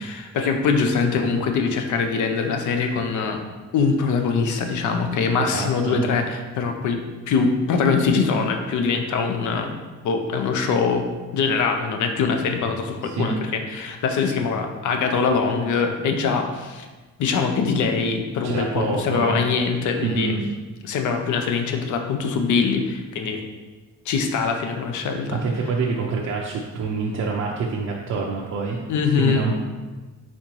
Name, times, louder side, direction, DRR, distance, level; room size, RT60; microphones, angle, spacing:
voice 1, 0.0-3.4 3.7-9.7 10.0-11.1 11.3-16.9 17.2-20.3 20.8-23.4 24.1-25.4 28.9-29.5, left 5 dB, 75° left, 5 dB, 0.6 m, -23 dB
voice 2, 5.4-6.0 13.1-13.4 18.4-19.4 20.0-20.5 25.3-28.8 29.2-29.6, right 4 dB, 60° right, -2 dB, 0.6 m, -26 dB
4.2 x 4.0 x 3.0 m, 1.3 s
cardioid pair, 90°, 30 cm